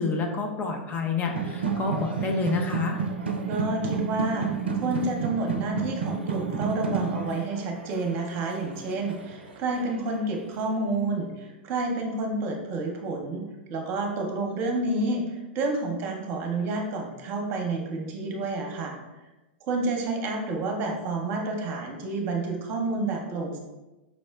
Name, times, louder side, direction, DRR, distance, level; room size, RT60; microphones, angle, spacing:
voice 1, 0.0-3.0, left 4 dB, 30° left, 2 dB, 0.5 m, -28 dB
sound 1, 1.2-10.1, right 5 dB, 80° right, 0.4 m, -31 dB
voice 2, 3.5-4.5 4.7-13.4 13.7-18.9 19.6-23.6, right 2 dB, 40° right, 2 dB, 0.8 m, -29 dB
5.0 x 2.1 x 3.4 m, 1.1 s
figure-of-eight pair, 100°, 6 cm